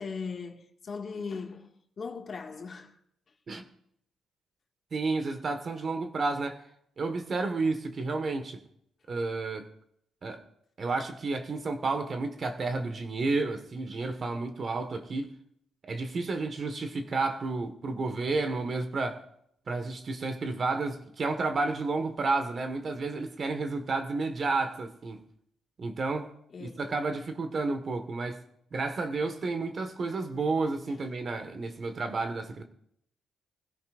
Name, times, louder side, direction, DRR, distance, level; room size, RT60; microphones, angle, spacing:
voice 1, 0.0-3.0 26.5-26.9 30.9-31.4, left 5 dB, 45° left, 2.1 m, -39 dB
voice 2, 4.9-6.6 7.0-8.6 9.1-9.7 10.2-10.4 10.8-15.3 15.8-19.2 19.7-25.2 25.8-26.3 26.6-28.4 28.7-32.6, right 3 dB, 45° right, 1.7 m, -31 dB
21.0 x 16.0 x 2.6 m
cardioid pair, 90°, 0 cm